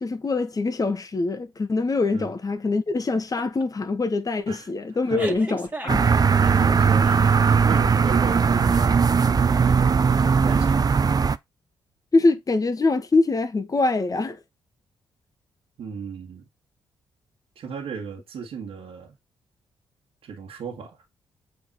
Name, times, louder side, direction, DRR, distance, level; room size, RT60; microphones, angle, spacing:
voice 1, 0.0-6.1 12.1-14.4, left 3 dB, 35° left, 1.5 m, -24 dB
sound 1, 3.3-3.7 4.0-4.3 5.1-6.6, right 2 dB, 15° right, 2.0 m, -35 dB
sound 2, 5.9-11.4, right 5 dB, 40° right, 0.6 m, -19 dB
voice 2, 6.1-9.0 9.3-10.9 15.8-16.4 17.5-19.2 20.2-21.0, right 5 dB, 65° right, 1.6 m, -35 dB
7.7 x 4.7 x 4.2 m
hypercardioid pair, 45°, 10 cm